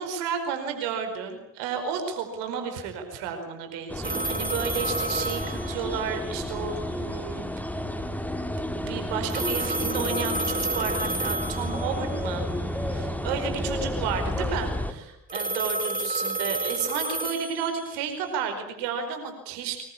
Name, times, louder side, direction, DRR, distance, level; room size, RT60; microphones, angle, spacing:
voice 1, 0.0-7.5 8.7-12.5 12.9-19.8, right 7 dB, 80° right, 7 dB, 4.9 m, -32 dB
sound 1, 3.9-14.9, left 1 dB, 5° left, 3.7 m, -31 dB
sound 2, 4.0-6.3 9.3-12.2 15.3-18.2, right 2 dB, 20° right, 3.5 m, -30 dB
25.5 x 21.5 x 9.8 m, 0.77 s
hypercardioid pair, 45°, 40 cm